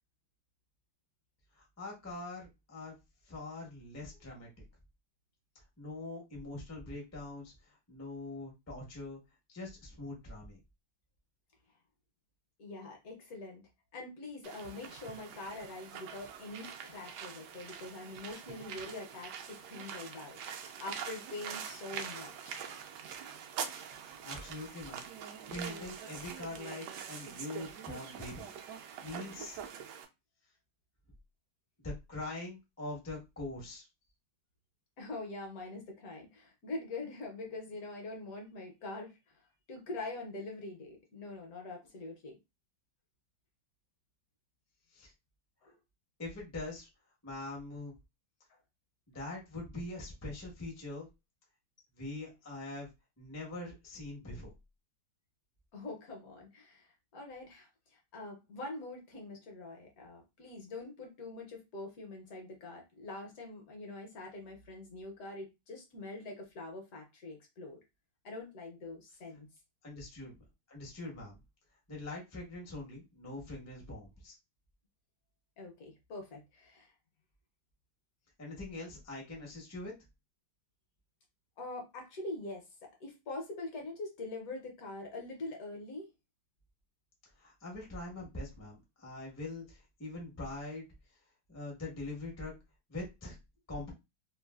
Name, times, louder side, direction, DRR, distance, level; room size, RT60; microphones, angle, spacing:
voice 1, 1.5-2.9 3.2-4.5 5.8-9.2 9.5-10.6 24.2-25.0 25.5-28.5 29.0-29.6 31.8-33.9 44.9-45.1 46.2-46.9 47.2-47.9 49.1-51.1 51.9-52.9 53.2-54.5 69.8-70.4 70.7-71.4 71.9-74.4 78.4-79.9 87.4-90.9 91.5-92.5 92.9-93.4 93.7-93.9, left 2 dB, 20° left, -1 dB, 0.4 m, -43 dB
voice 2, 12.6-22.6 35.0-42.4 45.6-45.7 48.5-48.6 55.7-67.8 68.2-69.5 75.6-76.9 81.6-86.1, left 2 dB, 65° left, 2 dB, 1.0 m, -44 dB
sound 1, 14.4-30.0, right 7 dB, 75° right, 1.1 m, -44 dB
3.1 x 2.4 x 2.3 m, 0.23 s
omnidirectional pair, 2.0 m